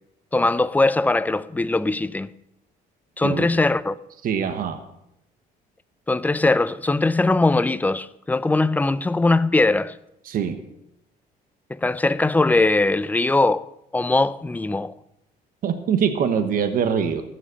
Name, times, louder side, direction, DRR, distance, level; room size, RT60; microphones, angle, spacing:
voice 1, 0.3-2.3 3.2-4.0 6.1-10.0 11.7-14.9, left 2 dB, 10° left, 0.4 m, -21 dB
voice 2, 4.2-4.8 10.2-10.6 15.6-17.2, right 7 dB, 55° right, 1.2 m, -23 dB
13.5 x 7.4 x 6.8 m
cardioid pair, 110°, 17 cm